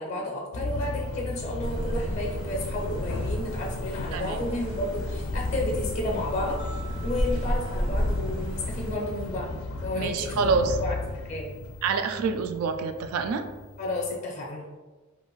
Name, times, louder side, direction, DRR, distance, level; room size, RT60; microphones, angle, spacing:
voice 1, 0.0-6.6 7.0-9.5 9.8-11.5 13.8-14.7, left 1 dB, 35° left, -1 dB, 0.5 m, -32 dB
sound 1, 0.5-14.2, left 2 dB, 90° left, 0.4 m, -35 dB
sound 2, 1.6-8.9, equal, 65° right, 0.9 m, -32 dB
voice 2, 4.1-4.4 9.9-10.8 11.8-13.4, right 5 dB, 90° right, 8 dB, 0.3 m, -27 dB
sound 3, 6.6-8.9, right 4 dB, 25° right, 0.4 m, -49 dB
2.4 x 2.4 x 3.0 m, 1.3 s
head